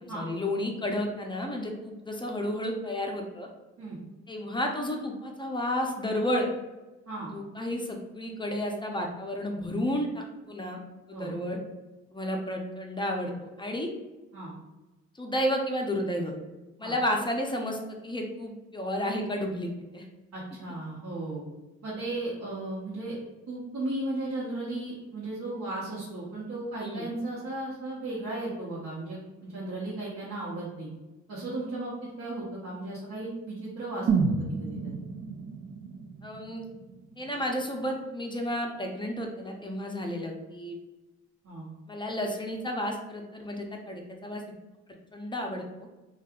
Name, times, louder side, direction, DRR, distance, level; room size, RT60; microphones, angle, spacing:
voice 1, 0.0-3.5 4.3-6.5 7.3-10.8 11.1-11.6 12.1-13.9 15.2-16.3 16.8-20.0 26.8-27.1 36.2-36.7 37.2-40.7 41.9-44.4 45.1-45.9, left 1 dB, 15° left, 1 dB, 0.5 m, -32 dB
voice 2, 20.3-21.4 21.8-23.2 23.5-30.9 31.3-34.1 34.4-34.9 41.4-41.7, right 2 dB, 60° right, -7 dB, 0.9 m, -35 dB
sound 1, 34.1-38.0 38.4-38.5, right 5 dB, 40° right, 0.4 m, -31 dB
2.7 x 2.3 x 3.5 m, 1.1 s
cardioid pair, 90°, 30 cm